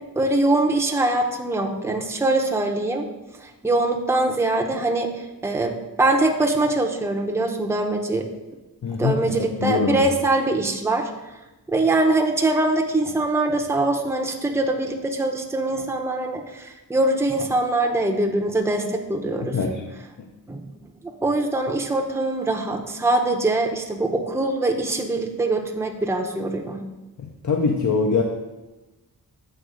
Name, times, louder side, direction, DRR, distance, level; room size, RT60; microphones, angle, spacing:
voice 1, 0.2-3.0 3.4-5.1 5.4-8.2 9.0-11.1 11.7-19.5 20.5-20.7 21.0-26.8, right 2 dB, 5° right, 1 dB, 0.6 m, -23 dB
voice 2, 8.8-10.1 19.4-19.8 20.2-20.3 27.2-28.2, left 4 dB, 50° left, 2 dB, 0.6 m, -23 dB
7.8 x 3.0 x 4.9 m, 1.1 s
wide cardioid pair, 95°, 37 cm